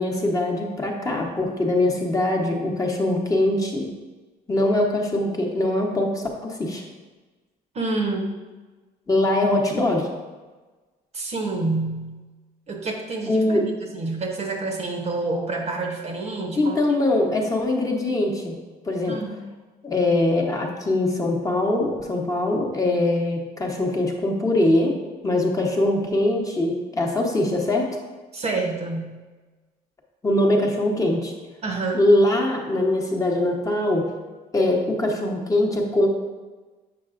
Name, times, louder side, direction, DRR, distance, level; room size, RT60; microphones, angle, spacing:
voice 1, 0.0-3.9 4.5-6.8 9.1-10.1 13.3-13.7 16.6-18.5 18.8-19.2 19.8-25.0 25.2-27.9 30.2-31.3 31.9-34.1 34.5-36.1, left 1 dB, 20° left, 0 dB, 0.9 m, -22 dB
voice 2, 7.7-8.3 11.1-12.2 12.7-16.8 19.1-19.4 28.3-29.2 31.6-32.0, right 3 dB, 40° right, 2 dB, 0.9 m, -28 dB
7.7 x 5.3 x 2.5 m, 1.3 s
cardioid pair, 110°, 17 cm